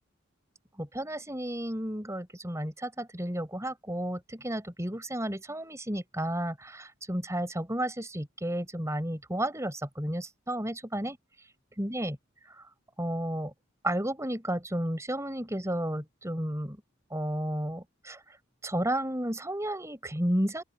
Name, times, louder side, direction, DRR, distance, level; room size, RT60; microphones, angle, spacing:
voice 1, 0.8-11.2 11.8-12.2 12.4-12.7 13.0-13.5 13.8-16.8 17.1-18.4 18.6-20.6, right 1 dB, 15° right, 5.9 m, -32 dB
open air
head